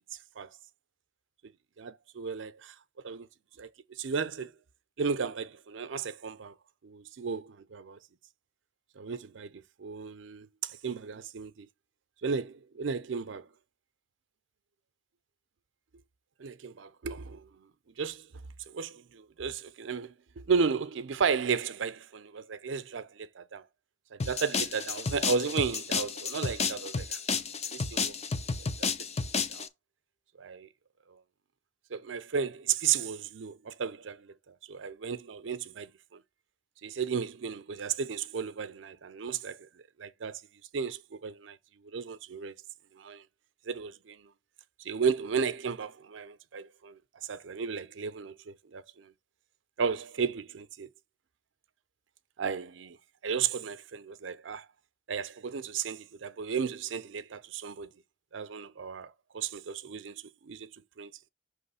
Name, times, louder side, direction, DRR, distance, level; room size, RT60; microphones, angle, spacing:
voice 1, 1.8-2.7 3.0-3.3 3.6-3.7 4.0-4.5 5.0-6.5 6.8-8.0 9.0-11.7 12.2-13.5 16.4-17.5 18.0-18.3 18.7-23.6 24.1-27.2 27.7-28.1 28.8-28.9 29.5-29.7 30.4-30.7 31.1-31.2 31.9-36.2 36.8-39.6 40.0-40.4 40.7-41.6 41.9-42.5 43.0-43.2 43.7-44.3 44.8-49.1 49.8-50.9 52.4-53.0 53.2-54.7 55.1-57.9 58.3-60.7 61.0-61.1, right 6 dB, 90° right, 0.5 m, -34 dB
sound 1, 24.2-29.7, left 5 dB, 35° left, 0.6 m, -32 dB
6.0 x 3.1 x 5.5 m
head